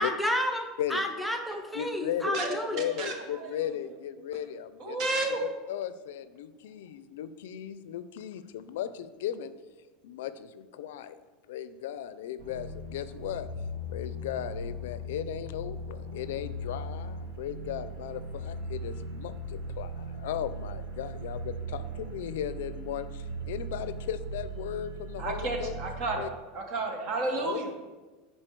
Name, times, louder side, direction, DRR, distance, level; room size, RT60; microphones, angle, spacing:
voice 1, 0.0-2.8, equal, ahead, 3 dB, 0.6 m, -31 dB
voice 2, 1.7-5.0 5.3-9.5 10.0-11.2 11.5-13.5 13.9-25.7 26.2-26.3 27.3-27.7, left 10 dB, 90° left, 13 dB, 0.4 m, -36 dB
voice 3, 2.3-3.5 4.8-5.4 25.2-26.2 26.5-27.7, right 2 dB, 45° right, 3 dB, 1.2 m, -32 dB
sound 1, 12.4-26.1, right 1 dB, 80° right, 1.5 m, -38 dB
7.7 x 4.3 x 4.5 m, 1.3 s
supercardioid pair, 155°, 0 cm